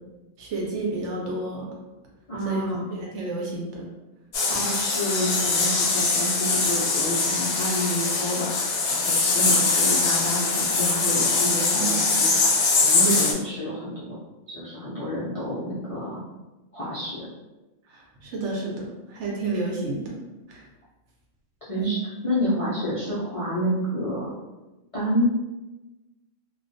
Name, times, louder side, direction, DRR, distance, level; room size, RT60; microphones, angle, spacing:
voice 1, 0.4-1.7 2.4-2.6 3.0-3.8 11.7-12.3 13.0-13.3 17.9-20.2 20.5-20.7 21.8-22.0 22.4-22.5, right 3 dB, 70° right, -2 dB, 0.8 m, -30 dB
voice 2, 2.3-2.9 4.5-14.2 14.5-16.2 16.7-17.3 21.7-22.0 22.2-24.3 24.9-25.3, equal, 65° left, -9 dB, 0.3 m, -29 dB
sound 1, 4.3-13.3, left 3 dB, 90° left, 1.0 m, -22 dB
2.3 x 2.2 x 2.5 m, 1.1 s
omnidirectional pair, 1.4 m